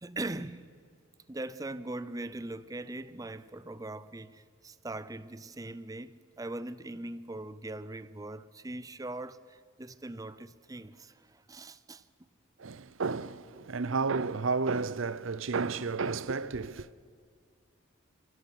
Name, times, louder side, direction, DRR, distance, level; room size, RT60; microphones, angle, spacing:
voice 1, 0.0-0.7 1.3-12.0, right 2 dB, 15° right, 0.5 m, -41 dB
voice 2, 12.6-16.9, right 4 dB, 70° right, 0.6 m, -32 dB
29.5 x 16.0 x 6.0 m
head